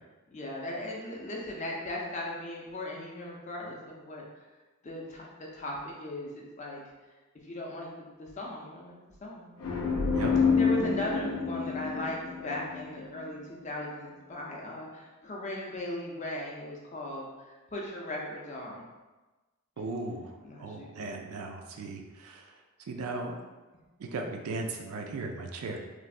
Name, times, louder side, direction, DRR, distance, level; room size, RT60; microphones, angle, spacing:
voice 1, 0.3-4.2 4.8-6.3 6.6-6.8 7.4-7.9 8.2-10.0 10.6-17.3 17.7-18.8 20.4-20.9, left 1 dB, 30° left, -2 dB, 0.4 m, -38 dB
sound 1, 9.6-13.3, left 5 dB, 90° left, 0.4 m, -28 dB
voice 2, 19.8-22.5 22.9-23.4 24.0-25.8, right 3 dB, 80° right, 3 dB, 0.4 m, -37 dB
3.2 x 2.0 x 2.5 m, 1.2 s
head